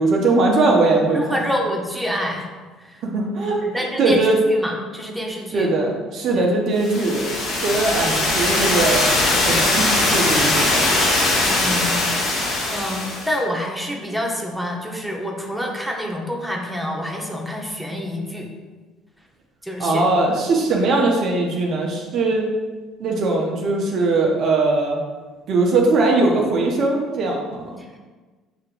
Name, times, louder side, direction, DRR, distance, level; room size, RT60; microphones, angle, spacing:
voice 1, 0.0-1.4 3.0-3.6 4.0-4.4 5.5-7.3 7.6-9.1 9.5-10.9 19.8-22.5 23.0-25.0 25.5-27.8, right 2 dB, 60° right, 0 dB, 0.7 m, -20 dB
voice 2, 1.1-2.5 2.8-3.0 3.6-5.7 6.3-6.5 11.5-12.0 12.3-18.5 19.6-20.2, equal, ahead, -1 dB, 0.9 m, -27 dB
sound 1, 6.8-13.3, left 2 dB, 70° left, 1.3 m, -20 dB
6.4 x 2.9 x 2.5 m, 1.3 s
hypercardioid pair, 65°, 0 cm